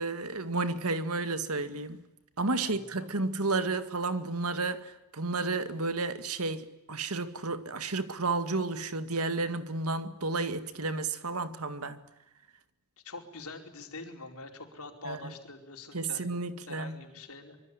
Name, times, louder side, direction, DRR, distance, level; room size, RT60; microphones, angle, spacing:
voice 1, 0.0-2.0 2.4-12.0 15.1-15.3 15.9-17.0, right 3 dB, 90° right, 2.0 m, -32 dB
voice 2, 13.0-17.6, left 3 dB, 85° left, 4.9 m, -45 dB
25.0 x 24.5 x 10.0 m
head